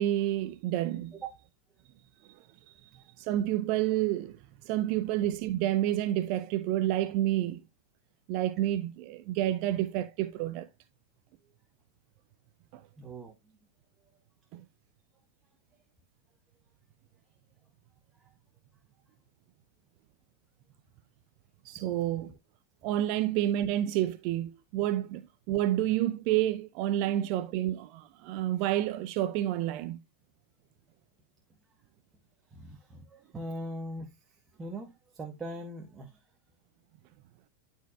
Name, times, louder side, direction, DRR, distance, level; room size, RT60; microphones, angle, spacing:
voice 1, 0.0-1.1 2.7-4.4 4.6-7.6 8.3-10.7 12.7-12.8 14.5-14.6 21.6-22.3 22.8-30.0, right 13 dB, 45° right, 0.5 m, -29 dB
voice 2, 13.0-13.3 18.2-18.3 27.2-27.3 32.5-36.3, right 1 dB, 15° right, 1.2 m, -41 dB
12.0 x 4.5 x 2.4 m
figure-of-eight pair, 90°, 0 cm